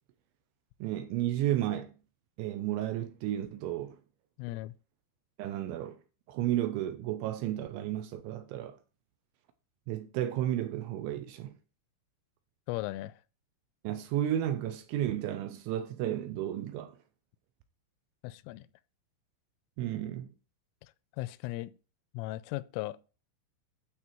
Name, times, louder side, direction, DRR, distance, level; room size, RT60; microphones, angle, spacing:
voice 1, 0.8-1.9 2.4-4.0 5.4-6.0 6.3-8.7 9.9-11.6 13.8-16.9 19.8-20.3, right 12 dB, 80° right, 3.0 m, -32 dB
voice 2, 4.4-4.7 12.7-13.2 18.2-18.7 21.2-21.7 22.1-23.0, left 17 dB, 90° left, 3.1 m, -37 dB
12.0 x 4.4 x 4.6 m
omnidirectional pair, 5.7 m